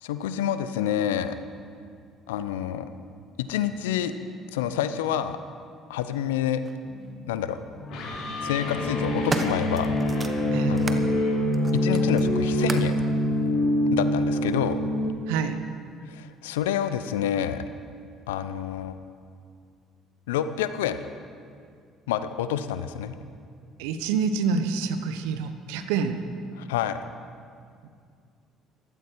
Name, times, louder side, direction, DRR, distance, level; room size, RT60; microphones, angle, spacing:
voice 1, 0.0-1.4 2.3-2.9 3.4-4.1 4.5-5.4 5.9-6.6 7.3-7.6 8.4-9.9 10.7-11.0 11.7-13.0 13.9-14.8 16.1-17.6 18.3-19.0 20.3-21.0 22.1-23.1 26.6-27.0, left 10 dB, 80° left, 11 dB, 0.6 m, -28 dB
sound 1, 6.7-6.8 7.9-8.2 8.8-11.1 11.5-13.0 13.9-14.0, right 3 dB, 30° right, 1.3 m, -35 dB
sound 2, 6.8-15.1, equal, 65° left, 2.9 m, -25 dB
voice 2, 10.5-10.8 15.3-15.6 23.8-26.2, right 5 dB, 75° right, 9 dB, 0.9 m, -27 dB
15.5 x 13.5 x 4.6 m, 2.2 s
hypercardioid pair, 55°, 0 cm